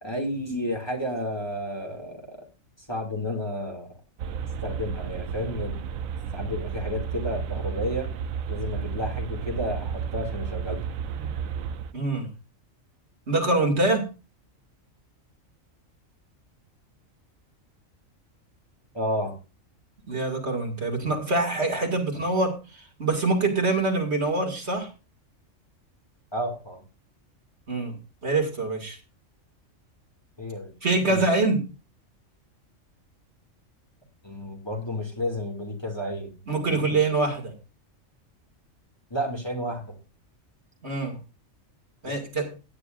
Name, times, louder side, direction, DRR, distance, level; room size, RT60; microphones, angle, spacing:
voice 1, 0.0-2.4 2.8-3.9 4.6-5.8 6.3-8.1 8.5-10.8 18.9-19.3 26.3-26.8 30.4-30.7 31.1-31.3 34.2-36.3 36.7-37.0 39.1-40.0 42.0-42.2, left 1 dB, 20° left, 0 dB, 2.3 m, -31 dB
sound 1, 4.2-11.9, right 7 dB, 90° right, 1.1 m, -32 dB
voice 2, 11.9-12.3 13.3-14.1 20.1-22.5 23.0-24.9 27.7-28.0 28.2-29.0 30.8-31.6 36.5-37.5 40.8-41.1 42.0-42.5, right 2 dB, 55° right, 2 dB, 2.7 m, -24 dB
17.0 x 9.8 x 2.5 m, 0.31 s
omnidirectional pair, 1.4 m